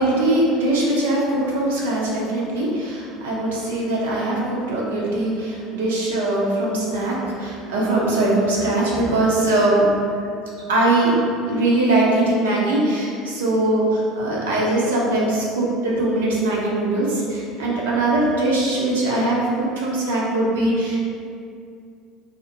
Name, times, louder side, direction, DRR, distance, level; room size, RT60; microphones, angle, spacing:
voice 1, 0.0-9.9 10.2-10.3 10.7-11.2 11.4-21.0, right 2 dB, 85° right, -5 dB, 0.5 m, -21 dB
2.7 x 2.0 x 2.5 m, 2.4 s
hypercardioid pair, 80°, 0 cm